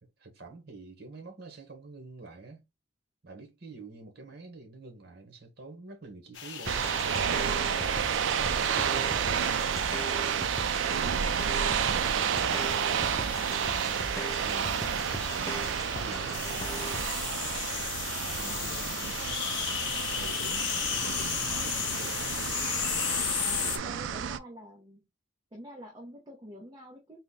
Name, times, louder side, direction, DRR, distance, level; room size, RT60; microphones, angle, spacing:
voice 1, 0.0-2.6 3.2-7.7 8.1-9.7 10.1-10.5 11.6-14.0 14.3-17.0 18.3-19.9 20.2-22.2 23.4-24.1, right 3 dB, 60° right, 1.3 m, -47 dB
sound 1, 6.4-23.8, left 8 dB, 70° left, 0.7 m, -36 dB
sound 2, 6.6-17.0, left 1 dB, 15° left, 0.4 m, -40 dB
sound 3, 6.7-24.4, right 8 dB, 80° right, 0.4 m, -30 dB
voice 2, 23.8-25.1 25.5-27.2, equal, 25° right, 0.7 m, -47 dB
4.0 x 2.2 x 3.9 m
head